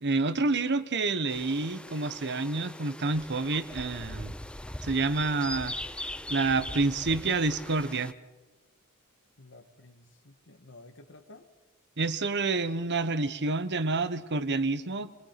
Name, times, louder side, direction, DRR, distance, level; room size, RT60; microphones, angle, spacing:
voice 1, 0.0-4.3 4.8-5.7 6.3-8.1 12.0-15.1, right 3 dB, 55° right, 13 dB, 1.2 m, -28 dB
sound 1, 1.3-8.1, left 1 dB, 5° left, 0.6 m, -41 dB
voice 2, 9.4-11.5, left 2 dB, 60° left, 8 dB, 1.9 m, -52 dB
29.0 x 20.5 x 5.9 m, 1.2 s
head